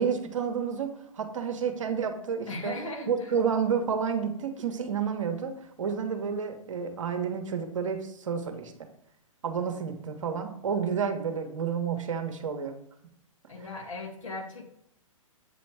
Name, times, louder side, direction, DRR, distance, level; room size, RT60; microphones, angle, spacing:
voice 1, 0.0-2.7 3.1-8.9 9.4-12.7, right 6 dB, 65° right, 5 dB, 1.0 m, -30 dB
voice 2, 2.5-3.3 13.5-14.6, left 2 dB, 65° left, 0 dB, 1.8 m, -37 dB
7.9 x 3.1 x 4.5 m, 0.73 s
figure-of-eight pair, 120°, 18 cm